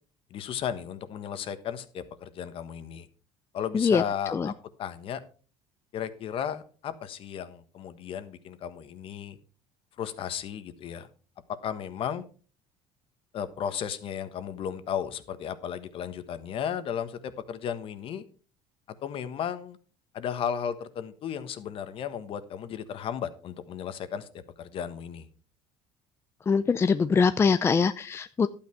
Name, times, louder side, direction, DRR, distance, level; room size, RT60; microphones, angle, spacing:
voice 1, 0.3-3.1 3.5-4.5 4.8-5.2 5.9-9.4 10.0-11.1 11.6-12.2 13.3-18.2 19.0-19.8 20.1-25.3, left 8 dB, 50° left, 12 dB, 1.3 m, -34 dB
voice 2, 26.5-28.5, left 5 dB, 20° left, 12 dB, 0.5 m, -23 dB
12.0 x 8.8 x 4.5 m, 0.38 s
cardioid pair, 120°, 12 cm